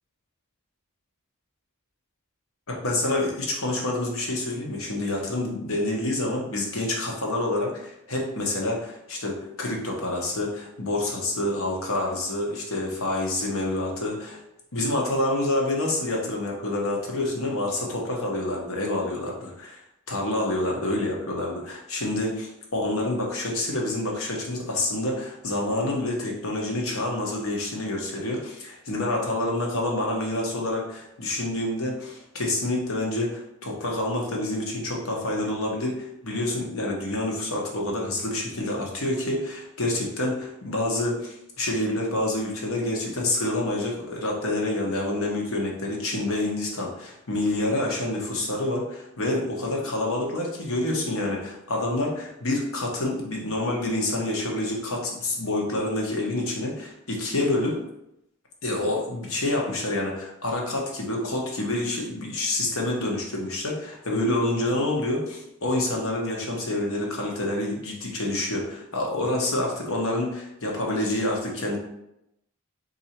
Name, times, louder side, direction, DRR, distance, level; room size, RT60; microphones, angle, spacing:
voice 1, 2.7-14.4 14.7-19.8 20.1-57.8 58.6-71.8, left 1 dB, 85° left, -1 dB, 1.1 m, -27 dB
4.0 x 2.6 x 4.4 m, 0.83 s
head